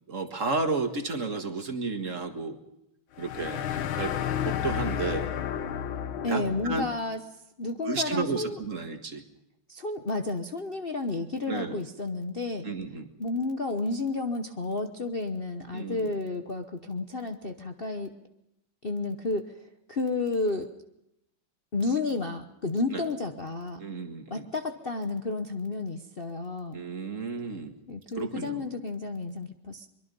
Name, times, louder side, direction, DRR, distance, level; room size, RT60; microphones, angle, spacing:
voice 1, 0.1-2.6 3.2-4.1 4.4-5.3 6.3-6.9 7.8-9.2 11.5-11.8 12.6-13.1 15.7-16.1 22.9-23.0 23.8-24.5 26.7-27.7 28.2-28.7, right 3 dB, 40° right, 6 dB, 2.0 m, -32 dB
sound 1, 3.2-6.9, left 9 dB, 85° left, 1.8 m, -31 dB
voice 2, 6.2-7.2 7.6-8.6 9.7-12.7 13.2-18.1 18.8-20.7 21.7-23.8 24.3-26.8 27.9-29.9, left 3 dB, 35° left, 4 dB, 1.0 m, -31 dB
23.5 x 22.5 x 5.4 m, 0.82 s
omnidirectional pair, 2.2 m